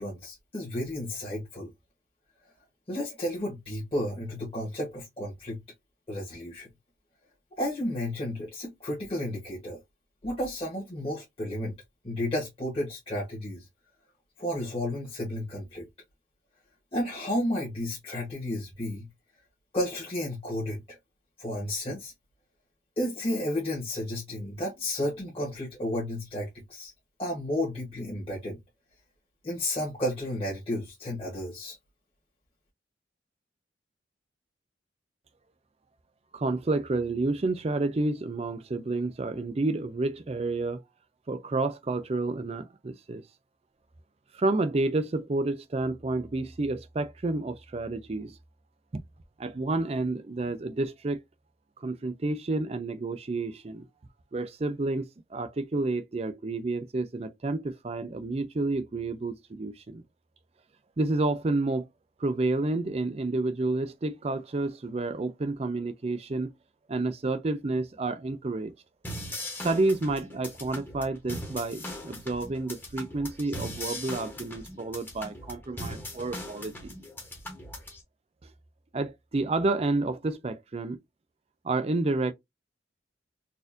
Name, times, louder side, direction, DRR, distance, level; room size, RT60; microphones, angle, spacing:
voice 1, 0.0-1.7 2.9-5.6 6.1-6.7 7.6-9.8 10.2-11.7 12.0-13.7 14.4-15.9 16.9-19.1 19.7-21.0 21.4-22.1 23.0-26.9 27.2-28.6 29.4-31.7, left 1 dB, 30° left, 1.3 m, -32 dB
voice 2, 36.3-40.8 41.3-43.2 44.3-48.4 49.4-51.2 51.8-53.9 54.3-55.0 55.3-60.0 61.0-61.9 62.2-66.5 66.9-68.7 69.6-76.9 78.9-81.0 81.6-82.3, right 2 dB, 35° right, 0.4 m, -30 dB
sound 1, 69.0-78.0, left 1 dB, 10° left, 1.0 m, -40 dB
4.2 x 2.6 x 2.5 m
head